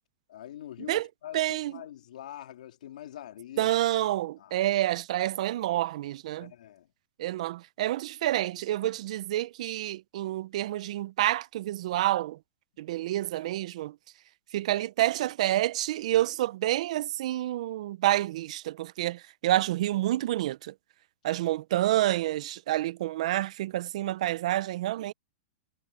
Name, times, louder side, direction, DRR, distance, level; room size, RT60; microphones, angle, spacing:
voice 1, 0.3-3.7 4.4-4.7 6.4-6.9, left 12 dB, 75° left, 3.2 m, -44 dB
voice 2, 1.3-1.7 3.6-6.5 7.2-12.4 12.8-13.9 14.5-20.7 21.2-25.1, right 14 dB, 55° right, 0.4 m, -28 dB
supercardioid pair, 160°, 4 cm